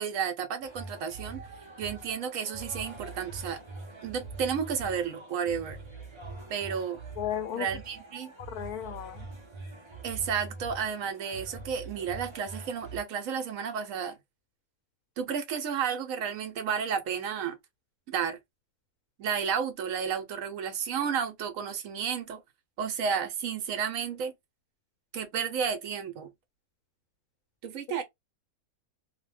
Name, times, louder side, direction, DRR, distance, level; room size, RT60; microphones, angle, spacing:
voice 1, 0.0-1.4 1.8-3.6 4.0-5.8 6.5-7.0 7.6-8.3 10.0-14.2 15.2-17.6 18.1-18.4 19.2-22.4 22.8-24.3 25.1-26.3 27.6-28.0, right 7 dB, 70° right, 1.0 m, -32 dB
sound 1, 0.6-13.0, right 3 dB, 50° right, 0.3 m, -44 dB
voice 2, 7.2-7.7 8.4-9.3, left 10 dB, 85° left, 1.1 m, -34 dB
2.7 x 2.1 x 3.1 m
omnidirectional pair, 1.6 m